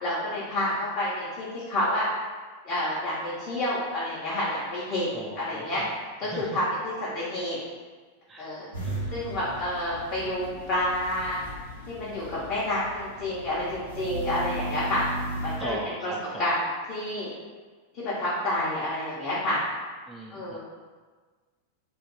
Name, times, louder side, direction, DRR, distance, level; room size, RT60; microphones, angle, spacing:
voice 1, 0.0-2.1 2.6-5.8 6.2-7.6 8.4-8.7 9.1-11.4 11.9-15.0 15.4-15.8 16.0-16.1 16.4-16.6 16.9-17.3 17.9-19.6 20.3-20.6, left 1 dB, 35° left, -9 dB, 0.9 m, -29 dB
voice 2, 5.1-5.9 6.3-6.6 8.3-9.6 15.6-16.5 20.1-20.6, right 2 dB, 15° right, 0 dB, 0.3 m, -39 dB
sound 1, 8.7-15.6, right 1 dB, 80° left, 0.9 m, -37 dB
2.9 x 2.5 x 3.9 m, 1.4 s
figure-of-eight pair, 90°, 0 cm